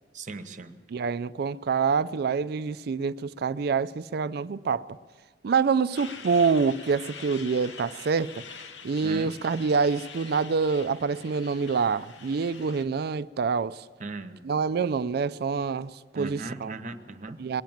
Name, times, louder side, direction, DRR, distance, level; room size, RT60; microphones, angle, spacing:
voice 1, 0.1-0.8 9.0-9.3 14.0-14.4 16.1-17.4, right 3 dB, 45° right, 0.9 m, -38 dB
voice 2, 0.9-4.9 5.4-8.4 8.8-13.8 14.4-16.7 17.4-17.6, right 5 dB, 60° right, 0.4 m, -26 dB
Truck, 5.9-12.8, left 5 dB, 85° left, 0.9 m, -45 dB
21.0 x 9.1 x 7.3 m
head